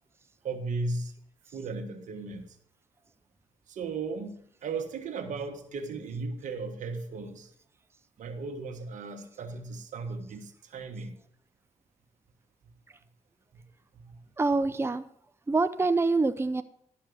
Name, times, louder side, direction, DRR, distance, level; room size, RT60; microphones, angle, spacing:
voice 1, 0.4-1.1 1.5-2.5 3.7-7.5 8.2-11.2 13.5-13.6 14.0-14.2, right 3 dB, 80° right, 1.5 m, -36 dB
voice 2, 14.4-15.0 15.5-16.6, right 3 dB, 20° right, 0.7 m, -25 dB
12.0 x 5.5 x 6.8 m
supercardioid pair, 50°, 13 cm